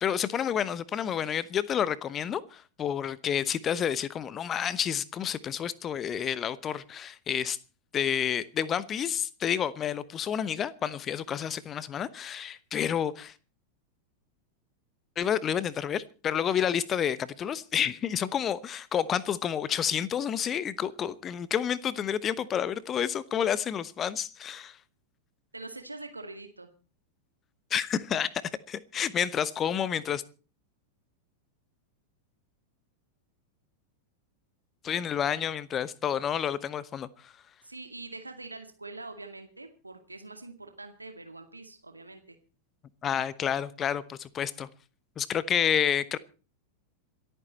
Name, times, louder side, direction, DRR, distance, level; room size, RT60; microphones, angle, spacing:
voice 1, 0.0-7.6 7.9-13.3 15.2-24.8 27.7-28.3 28.7-30.2 34.8-37.3 43.0-44.7 45.2-46.2, left 9 dB, 25° left, 1.1 m, -29 dB
voice 2, 25.5-26.7 37.6-42.4, right 2 dB, 85° right, 2.2 m, -44 dB
27.5 x 9.3 x 4.4 m
figure-of-eight pair, 90°, 0 cm